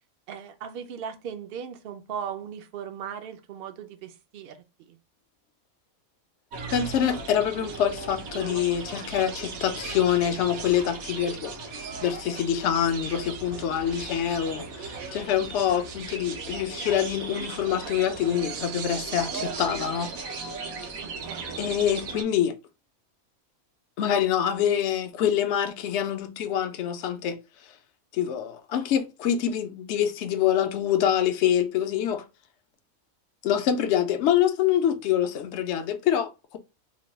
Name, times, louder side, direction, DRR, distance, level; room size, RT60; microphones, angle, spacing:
voice 1, 0.3-5.0 21.2-21.6, right 8 dB, 60° right, 0.6 m, -38 dB
sound 1, 6.5-22.2, right 4 dB, 85° right, 1.2 m, -37 dB
voice 2, 6.7-20.6 21.6-22.5 24.0-27.4 28.1-32.2 33.4-36.6, left 9 dB, 65° left, 0.8 m, -25 dB
3.1 x 2.2 x 3.9 m
omnidirectional pair, 1.4 m